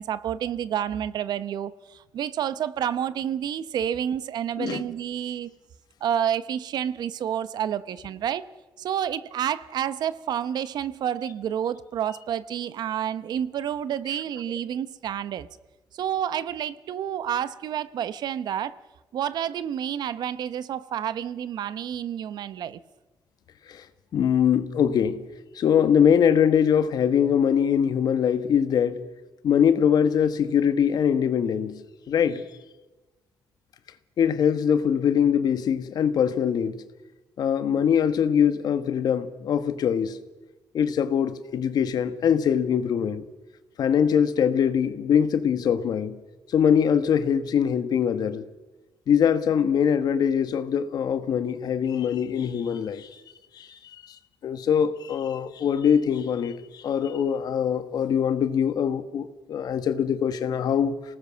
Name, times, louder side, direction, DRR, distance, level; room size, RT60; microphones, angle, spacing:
voice 1, 0.0-5.5 6.0-8.5 8.8-15.5 15.9-18.8 19.1-22.8, right 9 dB, 70° right, 1.0 m, -29 dB
voice 2, 24.1-25.3 25.5-29.0 29.4-31.8 32.1-32.4 34.2-36.8 37.4-40.2 40.7-43.2 43.8-46.2 46.5-48.4 49.1-53.2 53.6-53.8 54.4-60.9, left 8 dB, 65° left, 1.5 m, -23 dB
27.5 x 18.5 x 6.4 m
cardioid pair, 120°, 7 cm